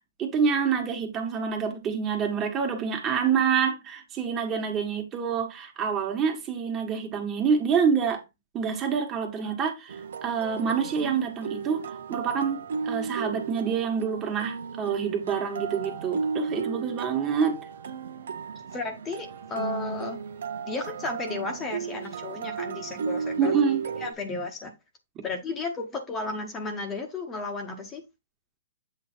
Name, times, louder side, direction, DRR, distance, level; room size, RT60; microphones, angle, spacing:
voice 1, 0.2-8.2 8.5-17.6 23.4-23.8, right 6 dB, 25° right, 1.7 m, -27 dB
sound 1, 9.9-24.1, right 6 dB, 70° right, 0.9 m, -34 dB
voice 2, 18.7-20.2 20.7-23.5 24.0-24.7 25.2-28.0, left 3 dB, 20° left, 1.2 m, -33 dB
8.0 x 3.1 x 4.4 m
hypercardioid pair, 145°, 0 cm